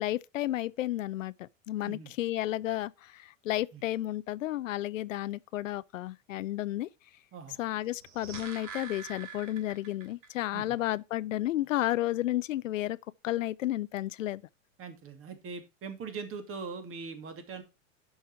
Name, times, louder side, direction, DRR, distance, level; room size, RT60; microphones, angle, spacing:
voice 1, 0.0-6.9 7.6-13.0 13.2-14.4, left 14 dB, 70° left, 0.6 m, -32 dB
sound 1, 7.8-10.3 10.6-10.7, right 6 dB, 70° right, 2.8 m, -44 dB
voice 2, 14.8-17.6, right 5 dB, 35° right, 2.6 m, -41 dB
11.0 x 5.7 x 4.4 m
hypercardioid pair, 100°, 39 cm